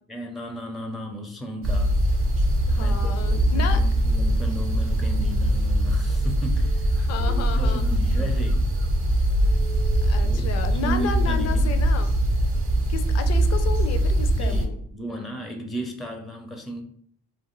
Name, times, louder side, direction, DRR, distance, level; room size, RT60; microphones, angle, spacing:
voice 1, 0.1-1.9 2.8-8.7 10.2-10.5 10.8-11.9 14.4-16.8, equal, ahead, 3 dB, 0.4 m, -34 dB
sound 1, 1.6-14.7, right 1 dB, 45° right, 0.6 m, -22 dB
voice 2, 2.7-3.8 7.0-7.9 10.0-12.1 12.9-14.8, left 6 dB, 55° left, 8 dB, 0.5 m, -32 dB
2.4 x 2.4 x 3.0 m, 0.62 s
cardioid pair, 90°, 30 cm